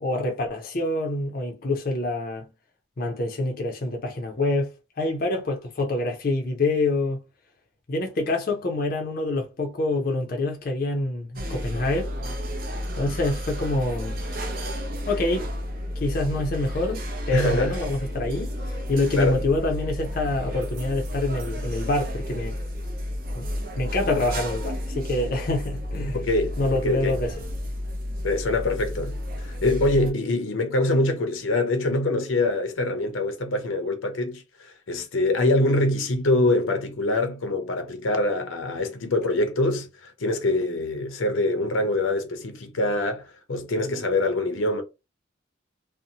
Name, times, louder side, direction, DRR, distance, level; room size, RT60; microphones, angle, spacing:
voice 1, 0.0-2.5 3.0-7.2 7.9-12.4 12.9-14.2 15.1-15.5 16.0-22.6 23.4-23.5 23.8-26.2 26.6-27.3, left 2 dB, 45° left, 0.5 m, -26 dB
sound 1, 11.4-30.1, equal, 45° right, 0.5 m, -32 dB
voice 2, 17.3-17.8 19.1-19.4 26.1-27.2 28.2-44.8, left 2 dB, 90° left, 0.6 m, -24 dB
2.6 x 2.0 x 2.8 m
head